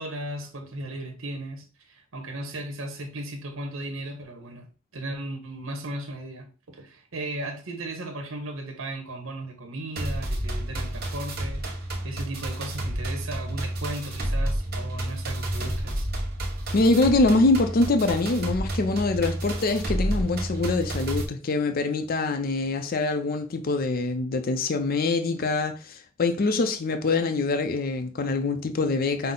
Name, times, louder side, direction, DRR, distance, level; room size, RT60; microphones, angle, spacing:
voice 1, 0.0-4.7 4.9-16.1, right 1 dB, 80° right, 0.9 m, -36 dB
sound 1, 10.0-21.2, right 1 dB, 50° right, 1.1 m, -30 dB
voice 2, 16.7-29.3, left 3 dB, 45° left, 0.4 m, -24 dB
5.6 x 2.0 x 3.8 m
head